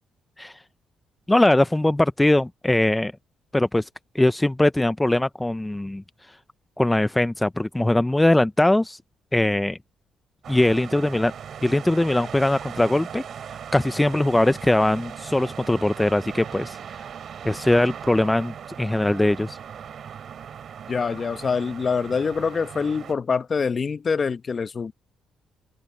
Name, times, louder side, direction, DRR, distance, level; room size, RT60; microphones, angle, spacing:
voice 1, 1.3-3.1 3.5-3.9 4.1-6.0 6.8-9.0 9.3-9.8 10.5-11.3 11.6-13.2 13.7-16.8 17.4-19.6, left 1 dB, 10° left, 0.5 m, -21 dB
sound 1, 10.4-23.1, right 8 dB, 60° right, 4.5 m, -39 dB
voice 2, 20.9-24.9, left 5 dB, 40° left, 0.9 m, -25 dB
cardioid pair, 90°, 0 cm